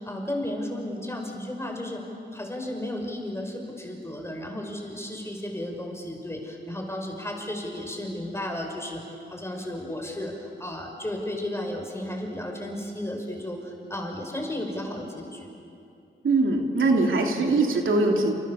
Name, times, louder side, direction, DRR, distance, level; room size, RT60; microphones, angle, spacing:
voice 1, 0.0-2.0 2.3-9.0 9.3-15.5, left 1 dB, 15° left, 2 dB, 5.6 m, -33 dB
voice 2, 16.2-18.3, right 3 dB, 85° right, 1 dB, 3.2 m, -22 dB
29.0 x 28.5 x 7.2 m, 2.6 s
wide cardioid pair, 95°, 20 cm